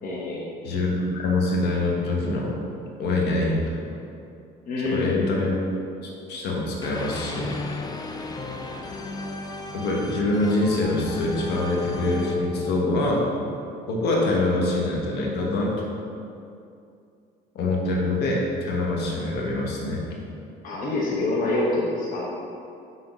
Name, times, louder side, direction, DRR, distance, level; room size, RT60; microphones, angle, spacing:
voice 1, 0.0-0.5 4.7-5.4 20.6-22.2, left 2 dB, 55° left, -6 dB, 1.0 m, -26 dB
voice 2, 0.6-2.6 3.0-3.7 4.9-5.6 6.3-7.6 9.7-13.2 13.9-15.7 17.5-20.0, left 2 dB, 75° left, -2 dB, 1.3 m, -24 dB
sound 1, 6.8-13.8, left 2 dB, 25° left, 0.5 m, -35 dB
5.9 x 3.8 x 5.1 m, 2.5 s
cardioid pair, 110°, 17 cm